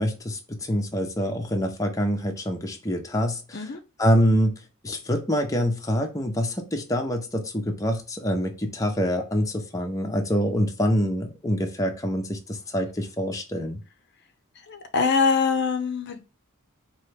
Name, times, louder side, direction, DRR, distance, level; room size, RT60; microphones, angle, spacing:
voice 1, 0.0-3.6 4.0-4.6 4.8-13.8, equal, 15° left, 2 dB, 0.7 m, -25 dB
voice 2, 14.7-16.2, left 5 dB, 50° left, 7 dB, 0.6 m, -23 dB
4.4 x 3.0 x 3.3 m, 0.32 s
head